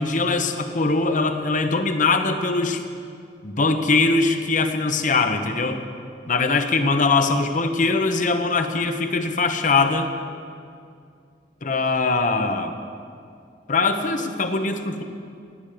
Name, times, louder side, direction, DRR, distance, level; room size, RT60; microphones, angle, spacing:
voice 1, 0.0-2.8 3.4-5.8 6.3-10.1 11.6-12.7 13.7-15.0, left 3 dB, 45° left, 7 dB, 1.0 m, -22 dB
18.0 x 10.5 x 6.8 m, 2.4 s
head